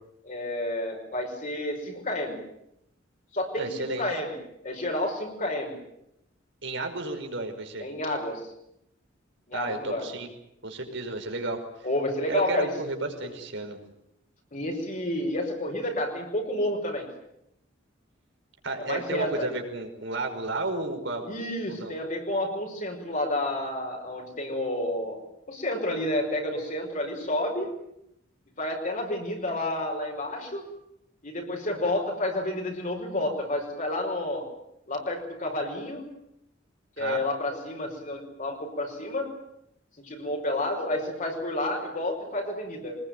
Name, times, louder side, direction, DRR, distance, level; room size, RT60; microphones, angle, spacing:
voice 1, 0.2-2.4 3.3-4.4 4.6-5.8 7.8-8.5 9.5-10.1 11.8-12.7 14.5-17.1 18.8-19.5 21.2-25.2 25.5-27.7 28.6-30.6 31.2-34.5 34.9-36.1 37.0-39.3 40.0-43.0, left 1 dB, 45° left, 1 dB, 5.7 m, -30 dB
voice 2, 3.6-4.0 6.6-7.9 9.5-10.3 10.6-11.6 12.3-13.8 18.6-21.3 21.7-21.9 37.0-37.2, right 2 dB, 65° right, 4 dB, 5.3 m, -32 dB
24.5 x 20.5 x 9.3 m, 0.80 s
head